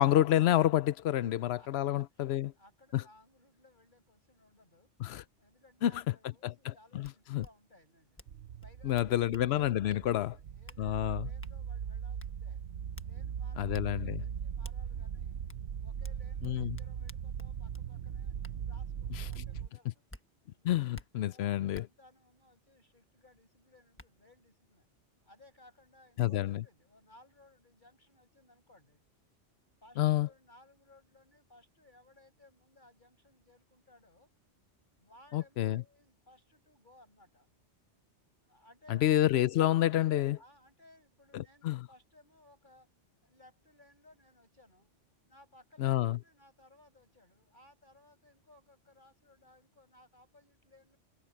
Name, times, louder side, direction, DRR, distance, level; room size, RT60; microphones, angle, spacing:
voice 1, 0.0-2.5 2.9-3.0 5.0-5.2 5.8-5.9 6.4-6.5 6.9-7.4 8.8-10.3 10.8-11.3 13.6-14.2 16.4-16.8 20.6-21.8 26.2-26.6 30.0-30.3 35.3-35.8 39.0-40.4 41.3-41.9 45.8-46.2, left 13 dB, 70° left, 0.8 m, -28 dB
voice 2, 1.5-4.9 5.4-8.2 8.6-9.6 10.1-12.6 13.0-15.4 15.8-18.3 18.7-20.1 20.5-20.8 21.2-24.9 25.2-29.0 29.8-34.3 35.0-37.5 38.4-39.1 40.4-42.9 43.2-44.9 45.2-51.0, left 2 dB, 45° left, 7.0 m, -62 dB
sound 1, 7.0-7.1 7.4-7.5 8.2-8.3 8.6-9.5 9.9-10.0 10.7-10.8 11.4-11.5 12.2-12.3 12.9-13.1 13.7-13.9 14.6-14.8 15.5-15.6 16.0-17.9 18.4-18.6 19.3-19.4 20.1-20.2 20.9-21.1 21.7-21.8 23.3-23.4 24.0-24.1, left 1 dB, 10° left, 1.2 m, -50 dB
sound 2, 8.3-19.7, right 8 dB, 70° right, 1.0 m, -40 dB
omnidirectional pair, 1.2 m